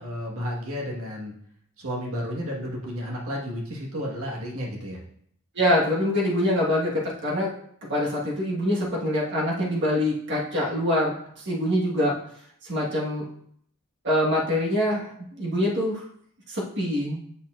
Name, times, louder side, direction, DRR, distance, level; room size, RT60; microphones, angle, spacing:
voice 1, 0.0-1.3 1.8-5.0, equal, 70° right, -3 dB, 1.5 m, -32 dB
voice 2, 5.5-7.5 7.8-12.2 12.6-13.3 14.0-16.0 16.5-17.2, left 1 dB, 55° right, -4 dB, 1.4 m, -25 dB
8.5 x 6.7 x 2.5 m, 0.66 s
head